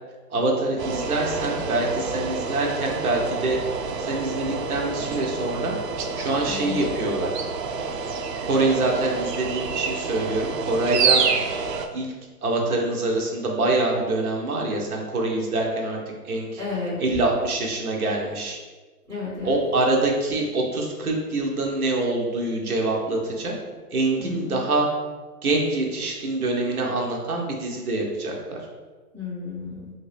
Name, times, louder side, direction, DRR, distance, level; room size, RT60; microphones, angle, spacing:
voice 1, 0.3-3.6 4.0-5.7 6.1-7.3 8.5-11.3 11.9-12.1 12.4-16.6 17.0-18.6 19.4-23.6 23.9-24.9 25.4-28.6, right 2 dB, 65° right, 0 dB, 1.0 m, -25 dB
sound 1, 0.8-11.9, right 5 dB, 85° right, 0.6 m, -28 dB
voice 2, 6.5-6.8 16.6-17.0 19.1-19.6 24.2-24.7 29.1-29.9, left 4 dB, 20° right, -12 dB, 1.3 m, -32 dB
3.0 x 2.7 x 3.2 m, 1.3 s
hypercardioid pair, 160°, 47 cm